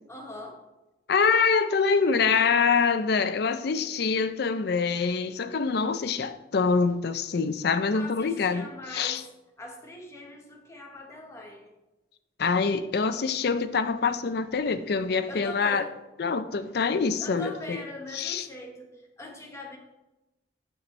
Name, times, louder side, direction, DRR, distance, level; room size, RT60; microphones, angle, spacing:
voice 1, 0.1-0.6 7.9-9.2 9.6-11.7 15.3-15.9 17.2-19.8, left 2 dB, 15° left, 1.1 m, -41 dB
voice 2, 1.1-9.2 12.4-15.8 16.2-17.8 18.1-18.5, left 5 dB, 60° left, 0.5 m, -25 dB
8.6 x 6.8 x 3.2 m
head